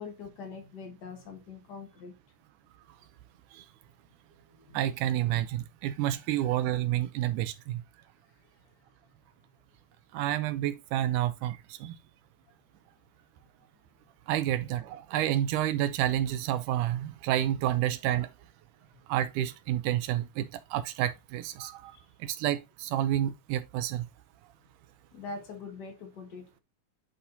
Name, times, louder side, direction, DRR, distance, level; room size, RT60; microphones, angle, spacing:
voice 1, 0.0-2.1 4.6-4.8 8.4-8.5 21.9-22.0 25.1-26.6, left 4 dB, 70° left, 1.0 m, -43 dB
voice 2, 4.7-7.8 10.1-12.0 14.3-18.3 19.1-24.1, right 12 dB, 80° right, 1.9 m, -29 dB
10.5 x 4.1 x 2.7 m
omnidirectional pair, 4.0 m